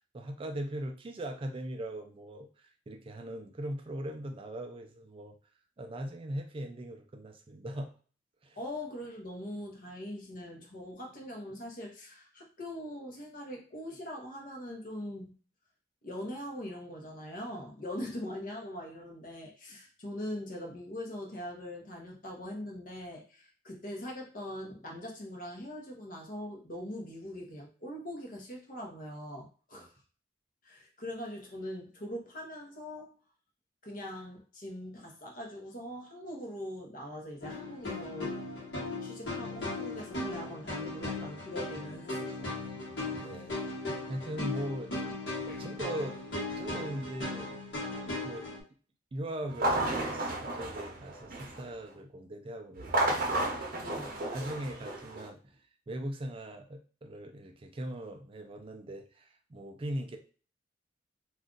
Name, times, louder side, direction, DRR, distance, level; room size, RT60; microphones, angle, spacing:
voice 1, 0.1-5.4 5.8-7.9 8.4-8.6 29.7-29.9 42.9-43.8 44.1-45.0 45.5-46.2 46.5-47.6 48.0-48.5 49.1-53.9 54.3-55.6 55.9-60.2, right 1 dB, 30° right, 4 dB, 0.4 m, -40 dB
voice 2, 8.6-15.3 16.0-29.9 30.6-33.1 33.8-38.3 39.0-42.6 45.5-45.7 53.8-54.2, left 1 dB, 50° left, 0 dB, 0.9 m, -42 dB
sound 1, 37.4-48.6, left 2 dB, 65° left, 1.2 m, -37 dB
sound 2, 49.5-51.7 52.8-55.3, right 1 dB, 50° right, 0.7 m, -32 dB
2.5 x 2.3 x 3.8 m, 0.39 s
head